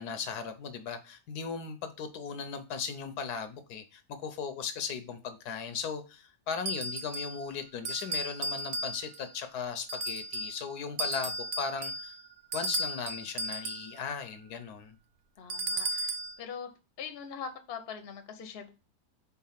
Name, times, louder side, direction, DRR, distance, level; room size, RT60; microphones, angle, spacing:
voice 1, 0.0-12.1 12.5-14.9, left 6 dB, 75° left, 1.2 m, -37 dB
sound 1, 6.7-7.4 7.8-9.3 9.9-10.6 11.0-13.9 15.5-16.4, right 1 dB, 60° right, 0.5 m, -35 dB
voice 2, 15.4-16.7 17.0-18.7, left 7 dB, 45° left, 0.9 m, -42 dB
4.7 x 4.1 x 5.7 m
omnidirectional pair, 1.8 m